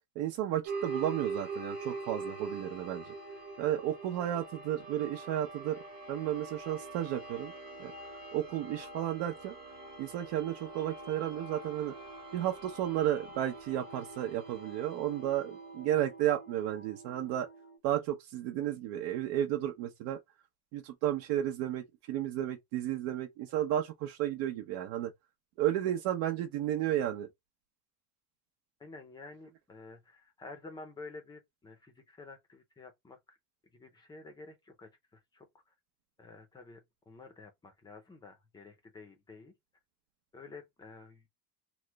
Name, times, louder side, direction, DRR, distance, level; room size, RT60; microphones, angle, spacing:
voice 1, 0.2-3.1 3.6-5.8 6.1-7.5 7.8-7.9 8.3-9.5 10.0-11.9 12.3-17.5 17.8-20.2 20.7-25.1 25.6-27.3, right 12 dB, 90° right, 0.7 m, -33 dB
sound 1, 0.7-17.8, right 3 dB, 25° right, 0.9 m, -44 dB
voice 2, 28.8-33.4 33.7-35.7 36.2-39.5 40.3-41.3, left 3 dB, 10° left, 0.4 m, -51 dB
3.0 x 2.0 x 3.2 m
cardioid pair, 175°, 39 cm